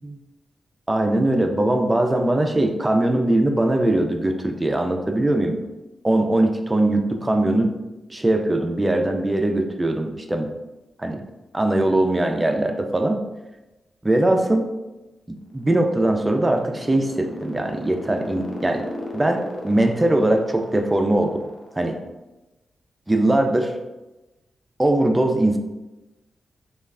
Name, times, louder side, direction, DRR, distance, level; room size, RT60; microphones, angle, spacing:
voice 1, 0.9-5.6 6.0-7.7 8.1-10.5 11.0-11.2 11.5-13.2 14.0-14.7 15.3-18.9 19.1-21.4 21.8-22.0 23.1-23.7 24.8-25.6, right 1 dB, 15° right, 4 dB, 0.3 m, -21 dB
sound 1, 15.4-22.0, left 2 dB, 55° left, 0.5 m, -36 dB
3.1 x 2.3 x 2.4 m, 1.0 s
wide cardioid pair, 105°, 0 cm